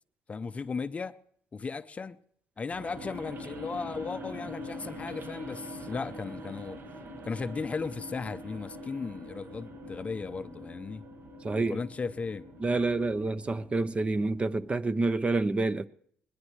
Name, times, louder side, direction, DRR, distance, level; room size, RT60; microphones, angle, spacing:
voice 1, 0.3-1.2 1.5-2.2 2.6-6.8 7.2-11.1 11.7-12.5, left 4 dB, 30° left, 0.6 m, -36 dB
sound 1, 2.7-14.7, equal, 50° right, 1.9 m, -44 dB
voice 2, 11.4-11.8 12.6-15.9, right 3 dB, 25° right, 0.8 m, -28 dB
21.0 x 20.5 x 3.2 m
cardioid pair, 110°, 5 cm